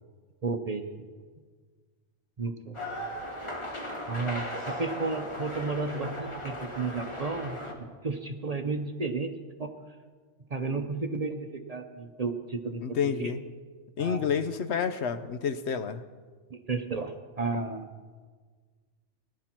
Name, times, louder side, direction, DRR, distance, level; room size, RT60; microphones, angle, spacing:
voice 1, 0.4-1.1 2.4-2.8 4.1-7.6 8.0-9.3 9.6-9.7 10.5-13.3 14.0-14.3 16.5-17.9, right 4 dB, 40° right, 6 dB, 0.7 m, -33 dB
sound 1, 2.7-7.7, left 1 dB, 25° left, 1.6 m, -37 dB
voice 2, 12.8-13.4 14.0-16.0, left 7 dB, 70° left, 11 dB, 0.9 m, -29 dB
18.5 x 11.0 x 4.5 m, 1.5 s
omnidirectional pair, 1.2 m